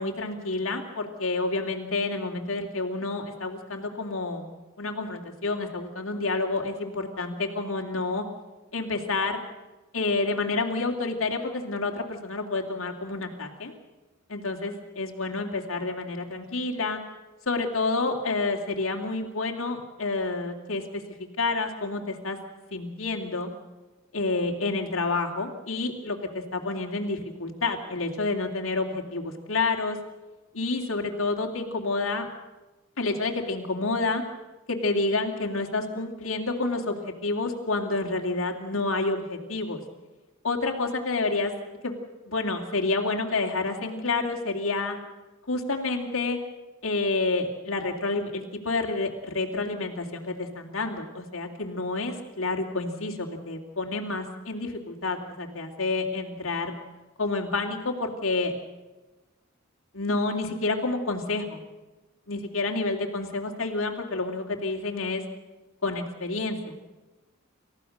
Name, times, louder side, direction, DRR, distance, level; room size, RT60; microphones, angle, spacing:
voice 1, 0.0-4.5 4.8-8.2 8.7-9.4 9.9-13.7 14.3-17.0 17.5-21.0 21.4-22.4 22.7-23.5 24.1-30.0 30.5-32.3 33.0-34.2 34.7-39.8 40.4-41.5 41.8-42.0 42.3-45.0 45.5-46.4 46.8-56.7 57.2-58.5 59.9-61.6 62.3-65.2 65.8-66.7, left 3 dB, 75° left, 1 dB, 2.8 m, -29 dB
28.5 x 15.0 x 6.6 m, 1.1 s
head